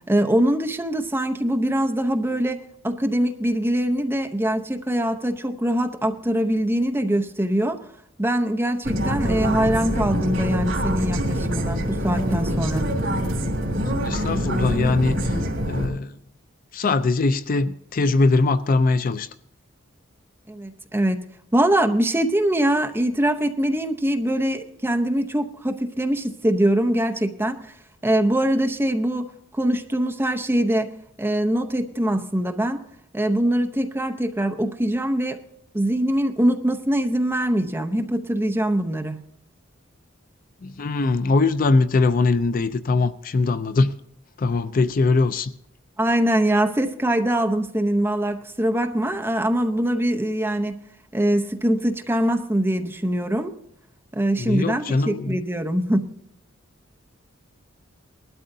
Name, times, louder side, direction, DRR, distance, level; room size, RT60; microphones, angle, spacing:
voice 1, 0.1-7.8 8.2-12.8 20.5-21.2 21.5-27.7 28.0-30.9 31.2-32.8 33.1-35.4 35.7-39.2 46.0-50.8 51.1-53.5 54.1-56.1, right 1 dB, 10° right, 0.7 m, -23 dB
sound 1, 8.8-15.9, equal, 85° right, 2.6 m, -25 dB
voice 2, 13.9-15.4 15.7-16.1 16.7-19.3 40.6-43.9 44.4-45.5 54.4-55.4, left 3 dB, 45° left, 0.4 m, -21 dB
19.5 x 12.5 x 2.7 m
head